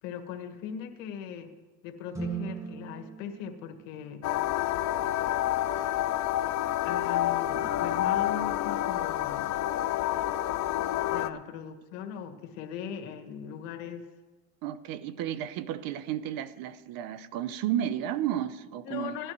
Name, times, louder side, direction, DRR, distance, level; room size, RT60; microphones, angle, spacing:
voice 1, 0.0-1.5 1.8-4.3 6.8-9.5 11.1-14.1 18.8-19.3, left 8 dB, 85° left, 1.5 m, -39 dB
sound 1, 2.1-4.5, right 6 dB, 10° right, 1.6 m, -39 dB
sound 2, 4.2-11.3, left 13 dB, 45° left, 0.6 m, -28 dB
voice 2, 14.6-19.2, right 11 dB, 60° right, 0.8 m, -32 dB
17.5 x 12.0 x 3.1 m
cardioid pair, 125°, 38 cm